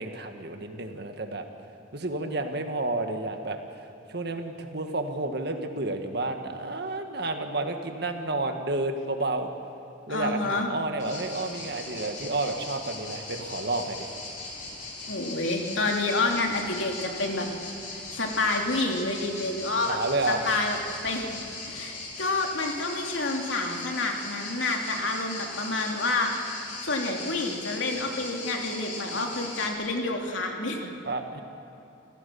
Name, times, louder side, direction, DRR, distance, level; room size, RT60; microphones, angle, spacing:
voice 1, 0.0-1.4 1.9-3.6 4.1-9.5 10.1-14.1 19.9-20.4 31.1-31.4, right 2 dB, 55° right, 5 dB, 1.7 m, -30 dB
voice 2, 10.1-10.7 15.1-17.5 17.9-20.0 20.3-20.8 21.0-21.4 21.6-26.3 26.8-30.9, left 2 dB, 80° left, 1 dB, 2.8 m, -28 dB
sound 1, 11.0-29.7, left 3 dB, 40° left, 4.0 m, -39 dB
27.5 x 16.0 x 7.1 m, 2.9 s
head